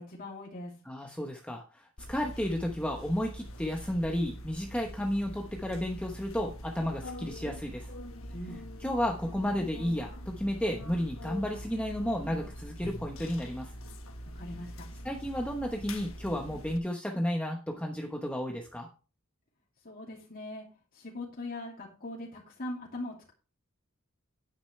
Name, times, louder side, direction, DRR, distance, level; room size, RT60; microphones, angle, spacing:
voice 1, 0.0-0.7 8.3-8.6 14.4-14.9 19.8-20.7 20.9-23.3, left 1 dB, 40° left, -3 dB, 2.6 m, -41 dB
voice 2, 0.8-7.9 8.8-13.7 15.0-18.9, equal, 5° left, 1 dB, 1.0 m, -32 dB
sound 1, 2.0-16.8, equal, 65° left, 1.4 m, -44 dB
9.9 x 9.8 x 3.2 m, 0.35 s
head